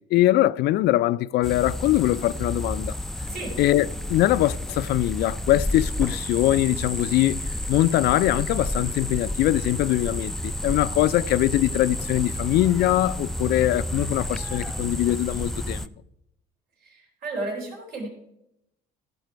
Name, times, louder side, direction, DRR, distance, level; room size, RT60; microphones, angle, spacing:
voice 1, 0.1-3.0 3.6-7.4 7.7-15.9, left 15 dB, 75° left, 0.4 m, -22 dB
sound 1, 1.4-15.9, equal, ahead, 0.3 m, -31 dB
voice 2, 16.8-18.1, right 2 dB, 70° right, 3.8 m, -33 dB
15.0 x 5.7 x 4.5 m
cardioid pair, 110°, 17 cm